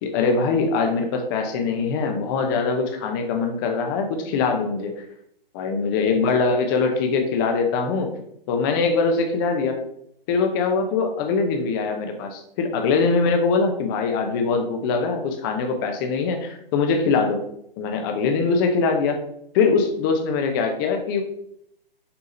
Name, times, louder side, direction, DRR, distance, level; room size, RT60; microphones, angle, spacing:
voice 1, 0.0-4.9 5.5-8.1 8.5-9.8 10.3-17.4 17.8-19.2 19.5-21.2, left 4 dB, 20° left, 5 dB, 0.8 m, -22 dB
6.9 x 3.5 x 4.2 m, 0.73 s
hypercardioid pair, 150°, 30 cm